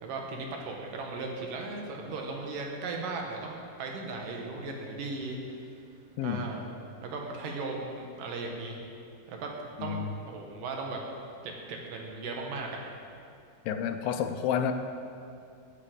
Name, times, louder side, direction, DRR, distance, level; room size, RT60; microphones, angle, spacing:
voice 1, 0.0-5.6 6.2-6.6 7.0-8.8 9.3-9.5 9.8-10.0 10.3-11.0 11.4-12.8, right 3 dB, 70° right, 1 dB, 2.8 m, -37 dB
voice 2, 13.7-14.7, left 8 dB, 80° left, 7 dB, 2.4 m, -30 dB
15.0 x 9.2 x 5.2 m, 2.4 s
omnidirectional pair, 4.2 m